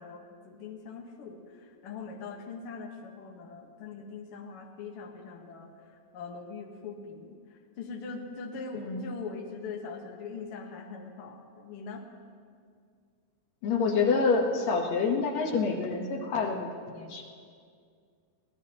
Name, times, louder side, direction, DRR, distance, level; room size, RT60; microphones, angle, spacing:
voice 1, 0.0-5.7 6.1-7.4 7.8-12.0, left 5 dB, 80° left, 2 dB, 1.2 m, -41 dB
voice 2, 13.6-17.2, left 4 dB, 65° left, 2 dB, 1.9 m, -27 dB
24.0 x 16.5 x 2.9 m, 2.2 s
omnidirectional pair, 4.3 m